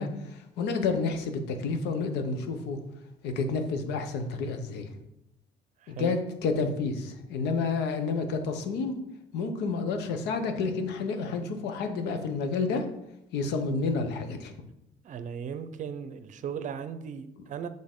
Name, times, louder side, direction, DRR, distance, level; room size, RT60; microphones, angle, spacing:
voice 1, 0.0-2.8 3.2-5.0 5.9-9.0 9.3-12.8 13.3-14.5, left 4 dB, 85° left, 7 dB, 0.9 m, -30 dB
voice 2, 5.8-6.2 15.0-17.7, right 7 dB, 50° right, 11 dB, 0.6 m, -37 dB
7.6 x 3.8 x 3.7 m, 0.84 s
cardioid pair, 110°, 17 cm